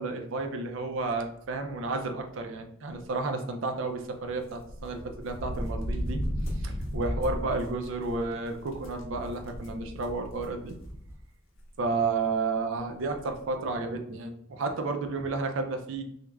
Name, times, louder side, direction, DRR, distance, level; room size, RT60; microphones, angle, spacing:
voice 1, 0.0-6.2 6.5-10.8 11.8-16.0, right 3 dB, 70° right, 5 dB, 0.4 m, -32 dB
sound 1, 4.5-11.2 11.6-11.7 12.8-12.9 13.1-13.4, equal, 70° left, 0.6 m, -35 dB
3.2 x 2.0 x 2.3 m, 0.73 s
head